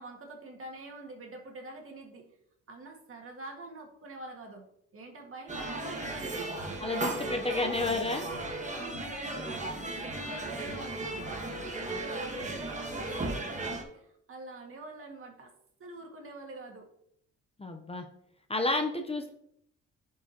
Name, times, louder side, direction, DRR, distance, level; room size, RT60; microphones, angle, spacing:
voice 1, 0.0-2.3 2.7-4.7 4.9-7.7 8.1-15.5 15.8-16.9, right 2 dB, 45° right, 2 dB, 1.9 m, -45 dB
sound 1, 5.5-13.8, right 2 dB, 25° right, 1.4 m, -36 dB
voice 2, 6.8-8.3 17.6-18.0 18.5-19.3, left 2 dB, 20° left, 5 dB, 0.7 m, -31 dB
10.5 x 4.7 x 2.9 m, 0.72 s
cardioid pair, 90°, 30 cm